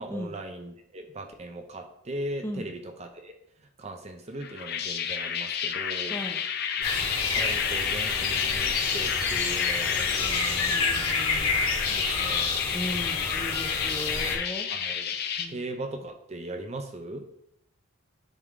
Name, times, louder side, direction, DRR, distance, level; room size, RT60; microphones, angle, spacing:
voice 1, 0.0-3.3 3.8-6.2 7.3-10.8 11.9-12.5 14.7-15.1 15.5-17.3, right 1 dB, 30° right, 4 dB, 0.6 m, -38 dB
sound 1, 4.4-15.5, left 8 dB, 50° left, 0.6 m, -30 dB
sound 2, 6.8-14.4, left 4 dB, 90° left, 2.2 m, -29 dB
voice 2, 10.7-11.6 12.7-14.7 15.4-15.6, equal, 10° left, 3 dB, 0.7 m, -37 dB
9.9 x 3.5 x 3.7 m, 0.73 s
head